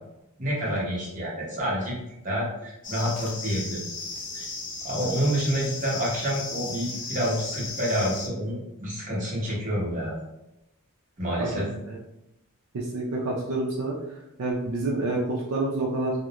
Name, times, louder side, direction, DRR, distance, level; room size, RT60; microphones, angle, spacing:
voice 1, 0.4-3.8 4.3-4.5 4.8-10.1 11.2-11.7, equal, 35° right, -5 dB, 0.9 m, -28 dB
sound 1, 2.8-8.3, left 3 dB, 40° left, 0.6 m, -36 dB
voice 2, 11.4-12.0 12.7-14.0 14.4-16.1, right 2 dB, 75° right, -3 dB, 0.5 m, -28 dB
2.4 x 2.0 x 2.9 m, 0.88 s
head